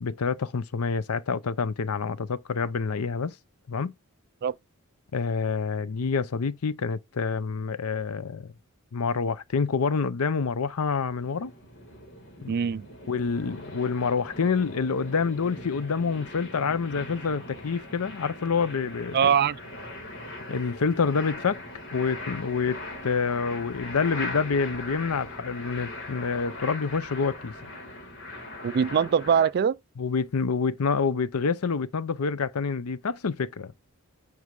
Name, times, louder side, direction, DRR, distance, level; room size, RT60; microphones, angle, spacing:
voice 1, 0.0-3.3 3.7-3.9 5.1-8.5 8.9-11.5 12.4-12.5 13.1-19.3 20.5-21.6 21.9-27.5 30.0-33.8, left 5 dB, 90° left, 0.6 m, -27 dB
sound 1, 10.6-29.5, left 2 dB, 60° left, 2.2 m, -40 dB
voice 2, 12.5-12.9 19.1-19.6 28.6-29.8, right 7 dB, 45° right, 0.3 m, -22 dB
9.5 x 3.4 x 5.3 m
head